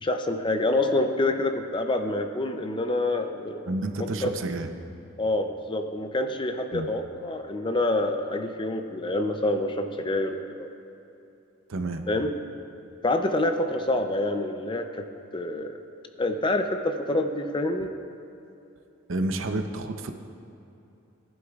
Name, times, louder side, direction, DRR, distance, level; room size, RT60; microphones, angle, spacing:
voice 1, 0.0-3.6 4.0-4.3 5.2-10.7 12.1-12.3 13.0-15.1 15.3-15.8 16.2-17.9, left 2 dB, 25° left, 7 dB, 0.5 m, -27 dB
voice 2, 3.7-4.7 6.7-6.9 11.7-12.0 19.1-20.1, right 2 dB, 65° right, 6 dB, 0.7 m, -30 dB
18.0 x 11.0 x 2.4 m, 2.9 s
head